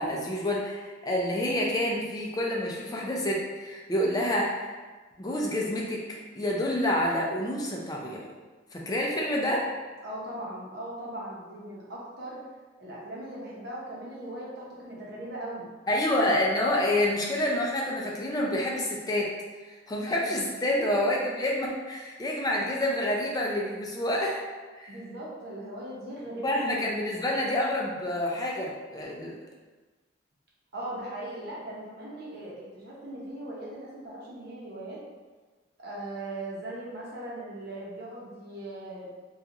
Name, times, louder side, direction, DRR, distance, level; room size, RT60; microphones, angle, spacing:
voice 1, 0.0-4.8 5.2-8.2 8.7-9.6 15.9-19.3 19.6-24.4 24.7-24.9 26.4-29.3, left 1 dB, 20° left, -2 dB, 0.4 m, -28 dB
voice 2, 10.0-12.4 12.8-15.7 20.7-21.0 24.9-26.8 27.1-27.3 30.7-35.0 35.8-39.1, right 1 dB, 60° right, -6 dB, 0.8 m, -39 dB
2.9 x 2.4 x 2.4 m, 1.3 s
head